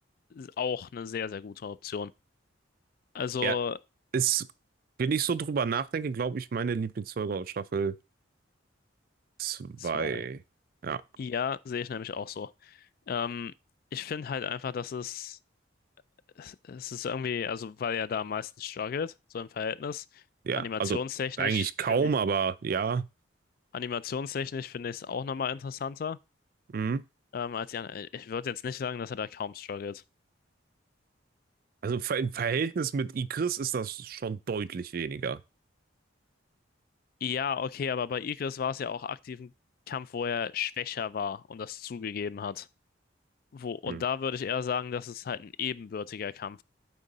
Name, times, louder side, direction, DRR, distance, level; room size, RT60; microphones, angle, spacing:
voice 1, 0.3-2.1 3.1-3.8 9.8-10.3 11.2-13.5 13.9-15.4 16.4-20.2 20.6-22.1 23.7-26.2 27.3-30.0 37.2-39.5 39.9-42.7 43.5-46.6, left 6 dB, 50° left, 0.3 m, -34 dB
voice 2, 4.1-4.5 5.0-8.0 9.4-10.4 10.8-11.0 20.4-21.0 21.4-23.1 26.7-27.0 31.8-35.4 43.9-44.0, right 6 dB, 50° right, 0.4 m, -29 dB
9.1 x 3.7 x 4.0 m
head